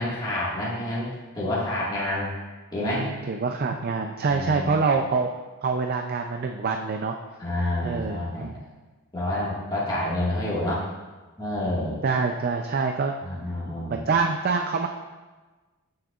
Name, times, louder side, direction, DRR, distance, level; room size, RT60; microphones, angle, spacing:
voice 1, 0.0-2.3 2.7-3.1 4.3-4.9 7.4-8.5 9.1-10.8 11.4-12.0 13.2-14.1, left 1 dB, 20° left, -8 dB, 1.7 m, -28 dB
voice 2, 2.9-5.3 5.6-7.2 7.8-8.5 12.0-13.1 13.9-14.9, right 4 dB, 45° right, 4 dB, 0.4 m, -25 dB
13.0 x 6.4 x 2.4 m, 1.3 s
head